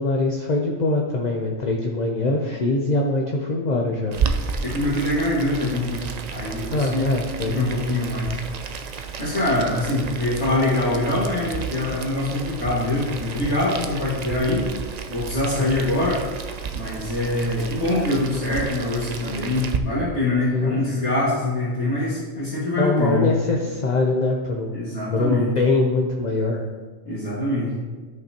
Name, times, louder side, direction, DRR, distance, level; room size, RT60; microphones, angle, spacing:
voice 1, 0.0-4.2 6.7-7.7 15.6-15.7 20.5-21.1 22.8-24.8 25.1-26.6, left 2 dB, 40° left, 0 dB, 0.7 m, -23 dB
Boiling, 4.1-19.8, right 6 dB, 65° right, 0.4 m, -32 dB
voice 2, 4.6-7.1 7.5-8.4 9.2-14.6 15.1-16.2 16.7-23.3 24.7-25.5 27.1-27.7, left 1 dB, 60° left, -11 dB, 2.4 m, -24 dB
13.0 x 5.5 x 2.9 m, 1.4 s
omnidirectional pair, 1.3 m